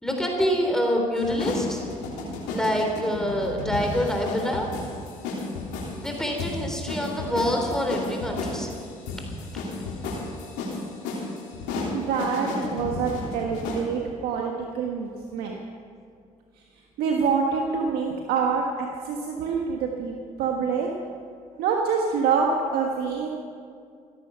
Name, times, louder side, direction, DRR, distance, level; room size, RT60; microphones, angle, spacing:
voice 1, 0.0-1.8 2.5-4.7 6.0-8.7 9.4-9.5, equal, 5° left, 1 dB, 3.6 m, -26 dB
sound 1, 1.2-13.9, left 3 dB, 85° left, 3.5 m, -33 dB
voice 2, 11.9-15.6 17.0-20.9 21.6-23.3, right 5 dB, 75° right, 0 dB, 1.5 m, -26 dB
16.0 x 13.5 x 5.8 m, 2.3 s
hypercardioid pair, 60°, 17 cm